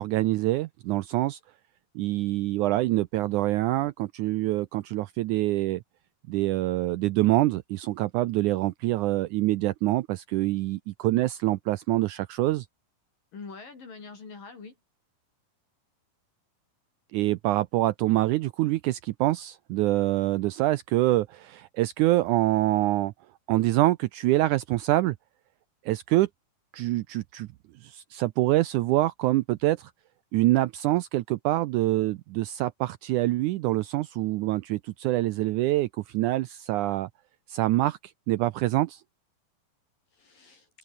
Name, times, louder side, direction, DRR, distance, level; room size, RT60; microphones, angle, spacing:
voice 1, 0.0-1.4 1.9-5.8 6.3-12.6 17.1-23.1 23.5-25.1 25.8-26.3 26.7-27.5 27.8-29.9 30.3-37.1 37.5-38.0 38.3-39.0, right 17 dB, 80° right, 1.8 m, -25 dB
voice 2, 13.3-14.8 40.1-40.7, left 4 dB, 70° left, 7.6 m, -44 dB
open air
omnidirectional pair, 4.1 m